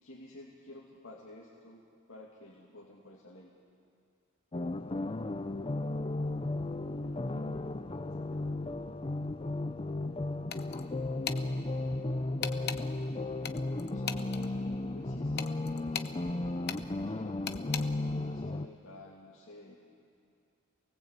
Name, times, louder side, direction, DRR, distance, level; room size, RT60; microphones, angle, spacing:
voice 1, 0.0-3.5 13.9-16.4 17.0-19.8, left 1 dB, 70° left, -3 dB, 2.4 m, -51 dB
sound 1, 4.5-18.7, left 2 dB, 25° left, 0.6 m, -35 dB
voice 2, 6.8-10.1 10.4-10.5 10.8-12.0, equal, 65° right, -1 dB, 4.6 m, -59 dB
sound 2, 7.5-7.7 8.5-8.6 9.3-9.4 10.2-10.3 11.0-11.1 11.9-12.0 12.7-12.8 13.5-13.7 14.0-14.3 14.5-14.8 15.1-15.4 15.7-16.6 16.8-18.2, right 2 dB, 45° right, 1.0 m, -53 dB
sound 3, 10.5-10.9 11.2-11.4 12.4-12.8 13.4-14.5 15.4-16.1 16.7-16.8 17.5-17.8, left 8 dB, 50° left, 0.9 m, -37 dB
28.0 x 19.5 x 8.2 m, 2.5 s
head